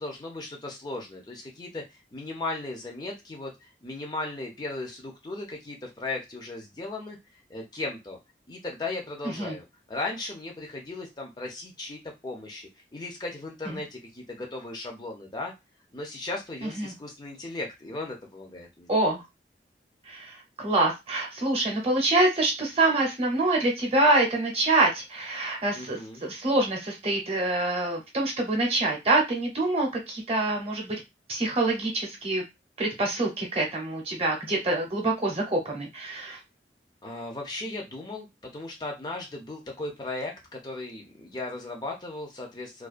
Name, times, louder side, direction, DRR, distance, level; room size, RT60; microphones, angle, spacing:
voice 1, 0.0-1.8 2.1-7.2 7.5-8.2 8.5-12.0 12.2-15.5 15.9-18.9 25.8-26.2 37.0-42.9, left 2 dB, 25° left, 1 dB, 0.4 m, -36 dB
voice 2, 16.6-16.9 18.9-19.2 20.1-31.0 31.3-32.4 32.8-36.4, right 2 dB, 35° right, 0 dB, 0.7 m, -26 dB
2.3 x 2.2 x 2.4 m, 0.22 s
head